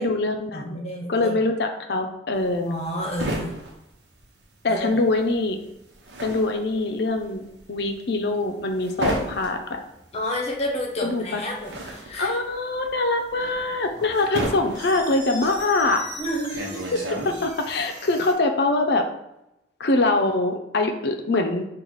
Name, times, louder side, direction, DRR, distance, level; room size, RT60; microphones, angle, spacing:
voice 1, 0.0-0.8 1.1-2.7 4.6-5.6 6.2-7.4 7.7-9.8 11.0-11.4 12.2-16.0 17.2-19.0 19.8-21.7, left 2 dB, 65° left, 4 dB, 0.6 m, -23 dB
voice 2, 0.5-1.3 2.7-3.6 4.7-4.9 10.1-12.4 16.2-16.8, equal, 35° left, -1 dB, 0.9 m, -30 dB
sound 1, 2.3-4.9 5.1-17.8, right 1 dB, 75° right, 0.9 m, -33 dB
sound 2, 13.3-18.3, equal, 20° right, 1.4 m, -41 dB
3.9 x 2.4 x 4.7 m, 0.86 s
head